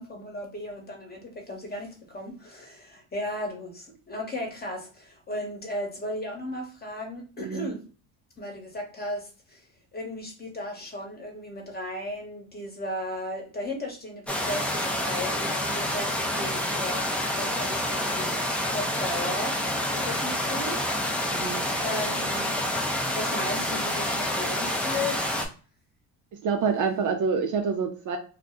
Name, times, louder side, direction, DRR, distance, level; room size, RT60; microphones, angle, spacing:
voice 1, 0.0-7.8 8.4-9.7 9.9-17.1 17.4-18.4 18.7-19.6 19.9-20.8 21.8-22.6 23.2-25.2, left 1 dB, 20° left, 1 dB, 1.0 m, -35 dB
voice 2, 7.4-7.7 21.3-21.6 26.4-28.2, right 5 dB, 45° right, 4 dB, 0.5 m, -27 dB
sound 1, 14.3-25.5, left 1 dB, 5° left, 0.4 m, -28 dB
2.3 x 2.1 x 3.6 m, 0.37 s
supercardioid pair, 85°, 43 cm